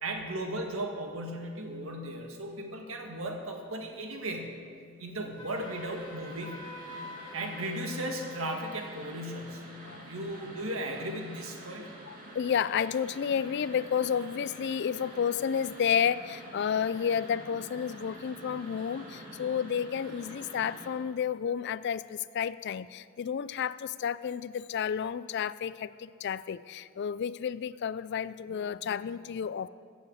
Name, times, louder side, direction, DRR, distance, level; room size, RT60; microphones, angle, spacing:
voice 1, 0.0-4.6 5.0-6.7 7.3-9.6 10.1-11.9, right 1 dB, 70° right, 2 dB, 1.8 m, -36 dB
Wind instrument woodwind instrument, 5.4-8.8, left 1 dB, 20° left, 1.5 m, -46 dB
sound 1, 5.5-20.9, right 1 dB, 40° right, 2.5 m, -48 dB
voice 2, 11.8-29.7, left 7 dB, 50° left, 17 dB, 0.3 m, -31 dB
15.0 x 7.1 x 8.0 m, 2.1 s
head